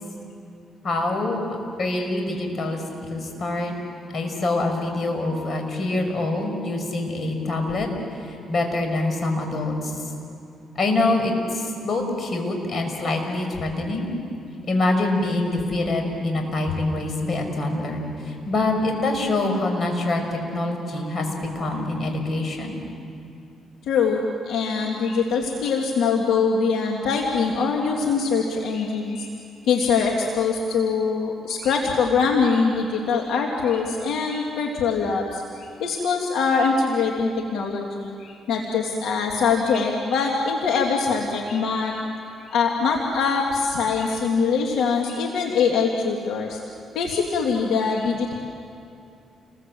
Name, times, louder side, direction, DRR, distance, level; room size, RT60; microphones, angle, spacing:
voice 1, 0.8-1.4 1.8-2.8 3.1-3.7 4.1-7.9 8.2-10.0 10.8-14.1 14.7-22.7, left 2 dB, 50° left, 4 dB, 5.6 m, -25 dB
voice 2, 23.9-24.2 24.5-29.3 29.7-42.0 42.5-46.6 46.9-48.3, left 5 dB, 80° left, 0 dB, 2.4 m, -23 dB
29.5 x 22.0 x 7.7 m, 2.6 s
cardioid pair, 90°, 0 cm